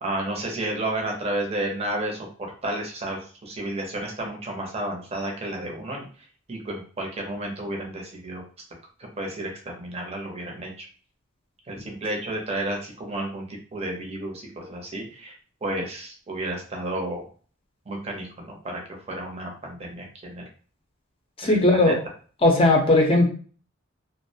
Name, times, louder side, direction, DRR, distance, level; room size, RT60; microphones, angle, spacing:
voice 1, 0.0-6.0 6.5-8.4 9.2-10.8 11.7-15.3 15.6-17.2 17.9-20.5 21.4-21.9, right 1 dB, 30° right, 0 dB, 0.6 m, -32 dB
voice 2, 21.4-21.9 22.4-23.2, left 2 dB, 30° left, 1 dB, 0.5 m, -17 dB
2.4 x 2.0 x 2.7 m, 0.41 s
head